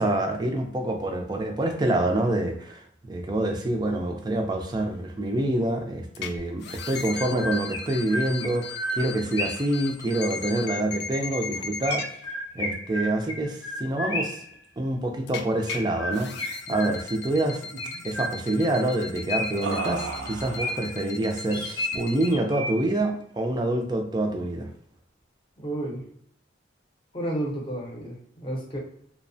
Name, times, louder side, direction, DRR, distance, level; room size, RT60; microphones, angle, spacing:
voice 1, 0.0-12.0 12.5-14.4 14.8-16.3 16.7-17.7 18.0-24.7, right 1 dB, 20° right, 3 dB, 0.4 m, -26 dB
sound 1, 6.1-6.3 6.6-12.1 15.3-15.8 16.1-22.3, left 5 dB, 55° left, 0.3 m, -38 dB
Chirp tweet, 7.2-9.8 11.8-14.5 15.7-17.3 17.8-18.7 19.3-21.0 21.5-23.0, left 1 dB, 75° left, 0.8 m, -33 dB
sound 2, 16.3-16.5 16.7-16.9 17.3-18.0 19.6-20.9 21.5-22.1, right 4 dB, 80° right, 0.4 m, -36 dB
voice 2, 25.6-26.0 27.1-28.8, right 1 dB, 25° left, -1 dB, 0.7 m, -31 dB
2.7 x 2.0 x 2.6 m, 0.68 s
head